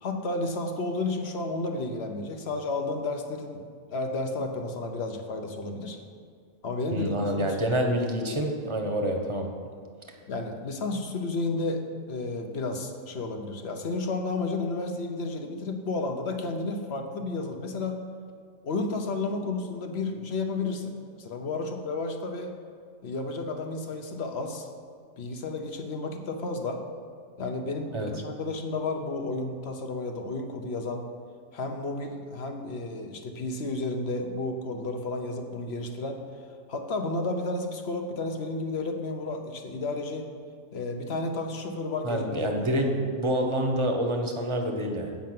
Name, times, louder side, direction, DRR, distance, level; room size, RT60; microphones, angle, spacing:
voice 1, 0.0-6.0 6.6-7.6 10.3-18.0 18.6-22.6 23.0-24.7 25.2-26.8 27.4-31.1 31.5-36.2 36.7-40.3 40.7-42.9, left 2 dB, 50° left, 4 dB, 1.1 m, -32 dB
voice 2, 6.9-9.5 27.9-28.1 42.0-45.2, right 1 dB, 25° right, 3 dB, 1.0 m, -27 dB
8.5 x 5.5 x 7.6 m, 2.2 s
omnidirectional pair, 1.5 m